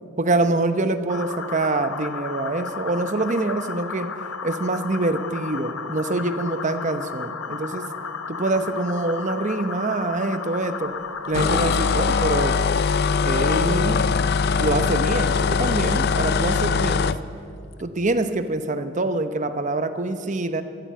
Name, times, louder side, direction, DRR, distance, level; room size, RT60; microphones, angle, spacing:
voice 1, 0.2-4.1 4.4-7.9 8.3-10.9 11.3-12.6 13.2-14.1 14.6-17.1 17.8-20.6, right 2 dB, 35° right, 9 dB, 0.8 m, -25 dB
sound 1, 1.1-12.5, left 5 dB, 85° left, 0.9 m, -34 dB
sound 2, 11.3-17.2, left 5 dB, 50° left, 0.5 m, -21 dB
13.0 x 11.5 x 9.1 m, 2.5 s
head